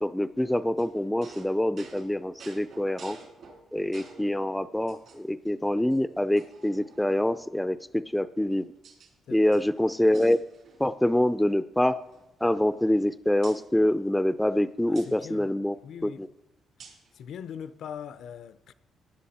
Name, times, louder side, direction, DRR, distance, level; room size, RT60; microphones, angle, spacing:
voice 1, 0.0-3.2 3.7-8.7 9.3-10.4 10.8-12.0 12.4-15.8 16.0-16.3, left 1 dB, 5° left, 0.4 m, -25 dB
sound 1, 0.8-4.3 4.9-5.5 5.9-6.0 6.4-7.4 8.2-9.1 9.4-11.0 11.2-11.4 11.8-13.0 13.4-13.6 14.9-15.1 16.8-17.1, right 4 dB, 70° right, 3.3 m, -51 dB
voice 2, 9.3-9.6 14.9-15.5 15.8-16.2 17.1-18.7, left 8 dB, 70° left, 0.6 m, -41 dB
15.5 x 9.9 x 4.3 m
cardioid pair, 90°, 0 cm